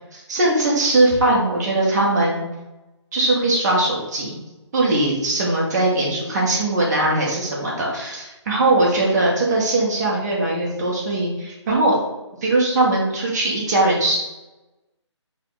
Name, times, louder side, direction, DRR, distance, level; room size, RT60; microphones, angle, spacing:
voice 1, 0.1-2.5 3.1-4.4 4.7-12.0 12.4-14.2, right 2 dB, 35° right, -4 dB, 1.3 m, -20 dB
4.1 x 2.5 x 4.0 m, 1.0 s
figure-of-eight pair, 150°, 15 cm